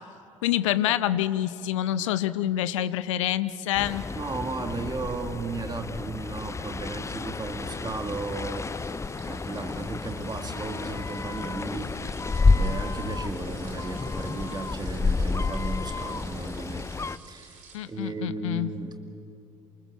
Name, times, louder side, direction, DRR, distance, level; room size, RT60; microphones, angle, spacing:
voice 1, 0.4-4.0 17.7-18.7, left 12 dB, 70° left, 15 dB, 0.7 m, -26 dB
sound 1, 3.8-17.2, left 3 dB, 15° left, 0.6 m, -30 dB
voice 2, 4.1-8.7 9.2-12.2 12.5-16.9 17.3-17.6 17.9-18.9, right 3 dB, 25° right, 6 dB, 2.5 m, -35 dB
sound 2, 7.1-17.8, right 4 dB, 45° right, 5.6 m, -52 dB
28.0 x 24.5 x 7.4 m, 2.8 s
figure-of-eight pair, 50°, 16 cm